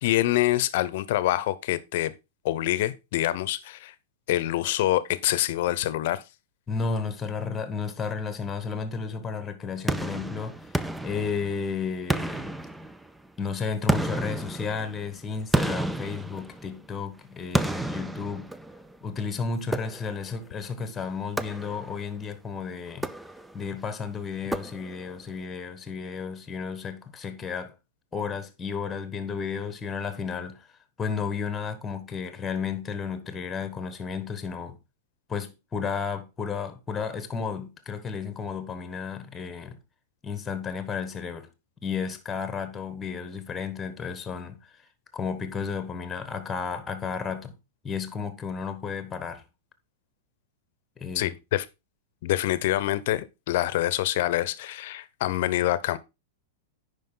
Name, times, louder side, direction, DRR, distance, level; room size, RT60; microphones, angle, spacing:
voice 1, 0.0-2.1 2.4-3.9 4.3-6.2 51.1-51.7 52.2-56.0, left 15 dB, 60° left, 0.7 m, -26 dB
voice 2, 6.7-12.5 13.4-18.5 19.0-23.1 23.5-27.7 28.1-30.7 31.0-34.8 35.3-39.8 40.2-41.5 41.8-44.7 45.1-47.5 47.8-49.4 51.0-51.4, left 5 dB, 15° left, 1.2 m, -33 dB
sound 1, 9.9-11.7 12.1-13.3 13.9-16.9 17.5-19.0 19.7-20.4 21.4-22.1 22.9-23.7 24.5-25.2, right 1 dB, 5° right, 0.4 m, -31 dB
9.4 x 5.2 x 3.8 m
supercardioid pair, 145°, 0 cm